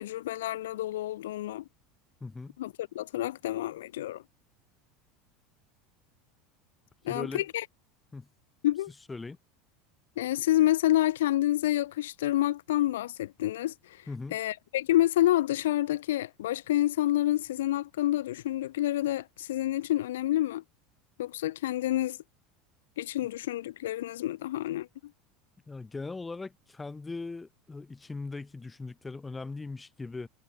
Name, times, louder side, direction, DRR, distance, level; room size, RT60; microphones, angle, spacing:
voice 1, 0.0-1.6 2.6-4.2 7.0-7.6 8.6-8.9 10.2-20.6 21.2-22.2 23.0-24.9, left 14 dB, 75° left, 1.5 m, -28 dB
voice 2, 2.2-2.6 7.1-7.4 8.1-8.3 9.1-9.4 14.1-14.4 25.7-30.3, left 3 dB, 15° left, 3.2 m, -39 dB
hypercardioid pair, 80°, 0 cm